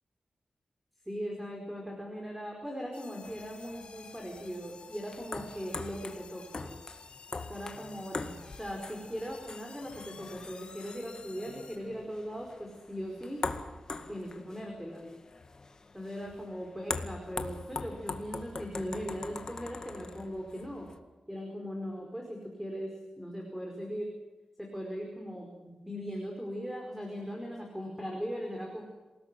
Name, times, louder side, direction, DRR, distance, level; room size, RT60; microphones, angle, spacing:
voice 1, 1.0-6.7 7.5-13.4 14.1-15.0 15.9-20.9 21.3-24.1 24.6-28.8, equal, 5° right, 1 dB, 4.9 m, -39 dB
sound 1, 2.9-11.8, left 5 dB, 55° left, 5.2 m, -52 dB
sound 2, 3.2-21.0, left 3 dB, 35° left, 1.9 m, -43 dB
28.0 x 19.0 x 7.6 m, 1.2 s
wide cardioid pair, 175°, 2 cm